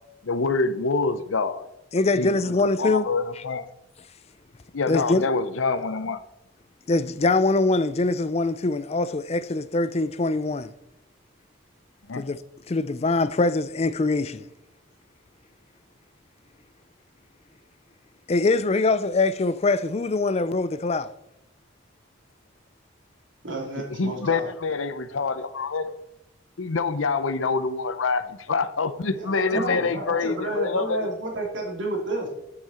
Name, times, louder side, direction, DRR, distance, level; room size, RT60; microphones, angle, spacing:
voice 1, 0.2-1.7 2.2-2.3 2.6-3.7 4.7-6.2 12.1-12.2 24.0-26.0 26.6-31.1, left 4 dB, 90° left, 0.7 m, -26 dB
voice 2, 1.9-3.1 4.9-5.2 6.9-10.7 12.2-12.4 12.7-14.4 18.3-21.1 29.7-29.8, left 3 dB, 35° left, 0.5 m, -23 dB
voice 3, 23.4-24.5 29.1-32.3, right 1 dB, 70° right, 3.0 m, -31 dB
9.3 x 8.7 x 4.3 m
head